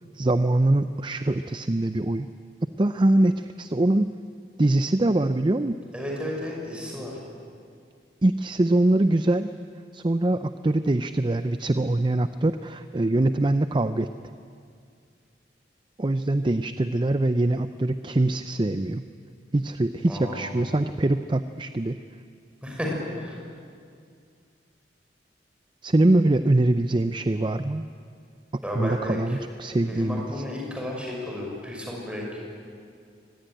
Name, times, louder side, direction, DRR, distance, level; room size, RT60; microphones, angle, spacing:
voice 1, 0.1-2.3 2.8-4.1 4.6-5.8 8.2-9.5 9.9-14.1 16.0-19.0 19.5-22.0 25.8-27.9 28.5-30.4, right 2 dB, 25° right, 11 dB, 0.5 m, -23 dB
voice 2, 5.9-7.1 20.1-20.7 22.6-23.3 28.6-29.2 29.9-32.3, left 1 dB, 5° right, -2 dB, 6.1 m, -33 dB
25.0 x 20.0 x 9.2 m, 2.2 s
head